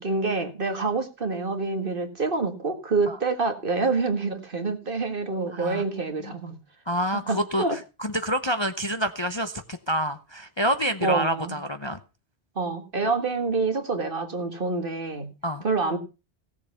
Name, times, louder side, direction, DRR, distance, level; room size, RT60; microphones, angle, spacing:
voice 1, 0.0-6.6 7.1-7.8 11.0-11.6 12.6-15.3 15.6-16.0, right 3 dB, 50° right, 6 dB, 1.9 m, -27 dB
voice 2, 5.5-5.8 6.2-6.3 6.9-12.0 15.4-15.6, equal, 25° left, 8 dB, 0.7 m, -28 dB
16.5 x 7.2 x 5.6 m, 0.31 s
omnidirectional pair, 1.2 m